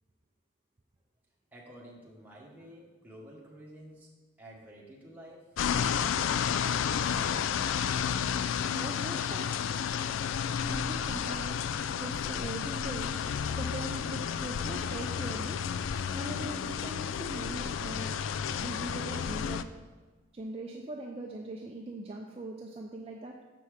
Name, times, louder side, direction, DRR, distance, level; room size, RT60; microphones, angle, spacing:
voice 1, 1.5-4.1 4.4-5.5, equal, 10° right, -4 dB, 1.3 m, -50 dB
sound 1, 5.6-19.6, left 7 dB, 75° left, 0.3 m, -31 dB
voice 2, 8.5-9.5 10.7-11.6 12.0-13.2 13.6-15.6 16.1-18.1 18.6-19.7 20.3-23.3, right 2 dB, 30° right, 0 dB, 0.5 m, -41 dB
6.9 x 5.8 x 4.9 m, 1.3 s
head